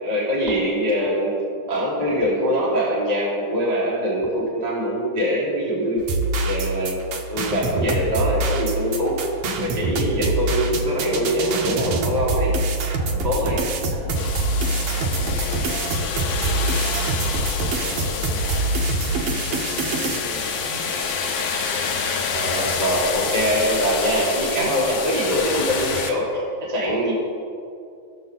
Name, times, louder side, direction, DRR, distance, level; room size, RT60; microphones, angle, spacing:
voice 1, 0.0-6.0 6.4-7.0 7.3-9.2 9.5-12.5 13.2-13.6 22.3-27.1, equal, 20° right, -5 dB, 1.0 m, -23 dB
sound 1, 6.0-20.2, right 2 dB, 90° right, 1.3 m, -25 dB
voice 2, 13.9-17.2 17.6-21.0 24.5-24.8, right 1 dB, 50° right, -6 dB, 2.0 m, -39 dB
sound 2, 14.2-26.1, left 5 dB, 75° left, 1.4 m, -27 dB
16.5 x 6.5 x 4.0 m, 2.4 s
omnidirectional pair, 3.9 m